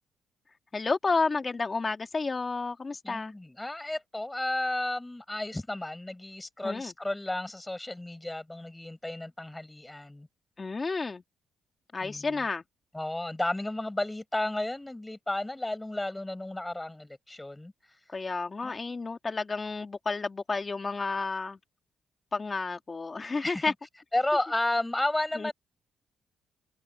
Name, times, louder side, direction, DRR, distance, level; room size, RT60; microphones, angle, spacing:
voice 1, 0.7-3.3 6.6-6.9 10.6-11.2 11.9-12.6 18.1-21.6 22.3-23.7 25.4-25.5, left 4 dB, 30° left, 2.7 m, -31 dB
voice 2, 3.0-10.3 12.0-12.4 12.9-17.7 18.6-19.0 23.4-23.7 24.1-25.5, left 1 dB, 10° left, 8.0 m, -33 dB
cardioid pair, 90°, 0 cm